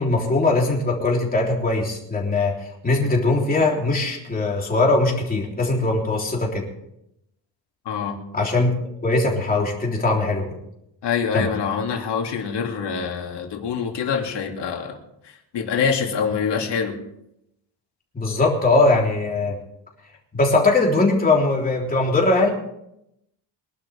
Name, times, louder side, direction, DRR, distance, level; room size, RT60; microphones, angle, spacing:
voice 1, 0.0-6.6 8.3-8.7 9.0-10.5 11.3-11.5 18.1-19.6 20.3-22.5, left 2 dB, 20° left, -2 dB, 3.6 m, -20 dB
voice 2, 7.8-8.2 11.0-15.0 15.2-16.9, left 6 dB, 65° left, 1 dB, 2.7 m, -25 dB
24.0 x 12.0 x 3.6 m, 0.81 s
cardioid pair, 165°, 45 cm